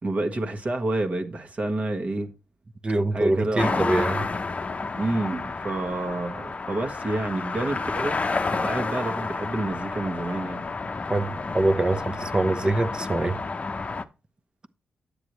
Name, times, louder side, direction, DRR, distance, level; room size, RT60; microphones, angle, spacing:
voice 1, 0.0-2.3 3.1-3.9 5.0-8.2 8.5-10.6, right 2 dB, 40° right, 1.6 m, -28 dB
voice 2, 2.8-4.2 11.1-13.4, right 2 dB, 25° right, 0.9 m, -24 dB
sound 1, 3.6-14.0, left 3 dB, 35° left, 0.8 m, -30 dB
9.7 x 8.2 x 3.1 m
cardioid pair, 85°, 4 cm